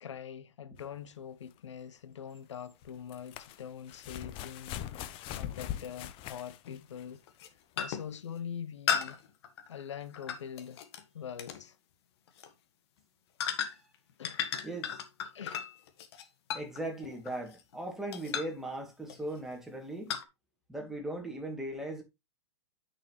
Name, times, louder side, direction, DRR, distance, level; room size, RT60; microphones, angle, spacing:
voice 1, 0.0-7.2 7.8-9.2 9.7-10.8 11.1-11.8 14.2-14.4 15.3-15.6, left 8 dB, 80° left, 0.9 m, -43 dB
sound 1, 0.8-0.9 2.9-7.2 8.1-8.2, left 12 dB, 35° left, 0.8 m, -41 dB
sound 2, 2.8-2.9 5.4-5.5 6.7-6.9 7.3-7.5 7.8-8.2 8.9-11.0 11.4-11.6 12.3-12.5 13.4-14.0 14.2-17.8 18.1-18.6 19.1-19.4 20.1-20.2, left 8 dB, 60° left, 1.6 m, -36 dB
voice 2, 13.5-13.8 14.6-15.0 16.5-20.1 20.7-22.0, right 1 dB, ahead, 2.6 m, -39 dB
9.7 x 5.9 x 3.2 m
hypercardioid pair, 120°, 15 cm